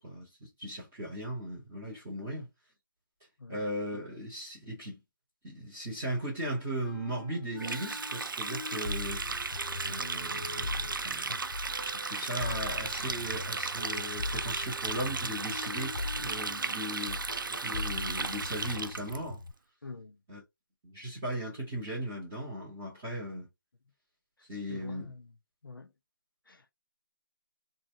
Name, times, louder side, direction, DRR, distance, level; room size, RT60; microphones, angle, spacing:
voice 1, 0.0-2.5 3.5-5.0 5.4-9.2 9.8-11.3 11.8-17.2 17.5-19.4 20.3-20.4 20.8-23.5 24.5-25.1, right 1 dB, ahead, 0.3 m, -37 dB
Wind instrument woodwind instrument, 6.8-11.0 11.7-17.1, left 4 dB, 20° left, 0.7 m, -47 dB
Water tap faucet, 7.6-19.2, right 4 dB, 70° right, 0.4 m, -35 dB
sound 1, 8.9-12.0 12.4-16.8 17.1-19.5, left 3 dB, 60° left, 0.5 m, -40 dB
voice 2, 19.8-20.2 24.7-25.3 25.6-25.9 26.5-26.7, left 3 dB, 80° left, 0.8 m, -46 dB
3.1 x 2.7 x 2.6 m
figure-of-eight pair, 175°, 11 cm